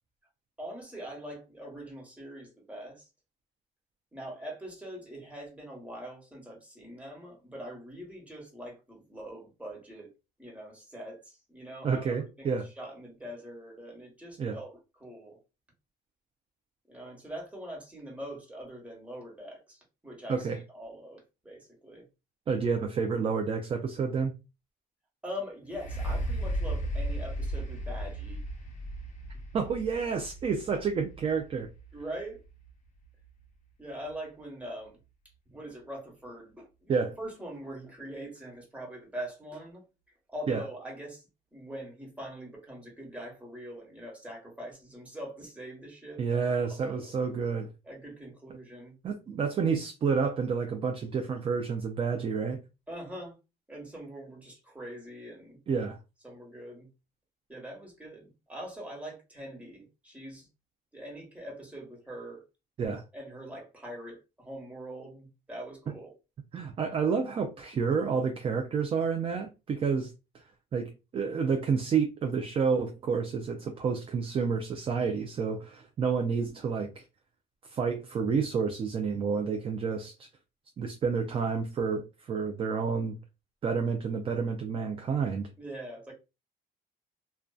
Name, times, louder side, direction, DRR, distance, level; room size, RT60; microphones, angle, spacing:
voice 1, 0.6-3.1 4.1-10.1 10.4-15.4 16.9-22.1 25.2-28.4 31.9-32.4 33.8-35.0 35.5-39.8 40.3-41.2 41.5-46.4 46.7-47.1 47.8-49.0 52.9-53.4 53.7-55.6 56.2-56.9 57.5-60.5 60.9-62.4 63.1-66.1 85.6-86.1, equal, 10° right, 1.1 m, -43 dB
voice 2, 11.8-12.7 14.4-14.6 20.3-20.6 22.5-24.3 29.5-31.7 36.9-37.1 40.5-40.6 46.2-47.7 49.0-52.6 55.7-56.0 62.8-63.0 66.5-70.4 70.7-77.0 77.7-80.3 80.8-83.2 83.6-85.5, right 5 dB, 35° right, 0.4 m, -29 dB
sound 1, 25.7-33.4 34.1-34.2, right 1 dB, 45° left, 0.9 m, -35 dB
2.5 x 2.2 x 2.2 m
cardioid pair, 110°, 17 cm